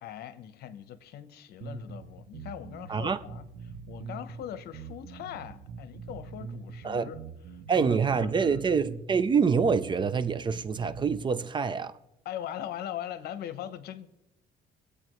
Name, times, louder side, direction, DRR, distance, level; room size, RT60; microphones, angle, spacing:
voice 1, 0.0-7.2 7.7-8.6 12.2-14.1, left 10 dB, 70° left, 0.9 m, -41 dB
sound 1, 1.6-11.2, right 5 dB, 70° right, 1.1 m, -43 dB
voice 2, 2.9-3.2 6.8-7.1 7.7-12.0, right 5 dB, 30° right, 0.5 m, -26 dB
24.5 x 8.3 x 3.1 m
cardioid pair, 110°, 17 cm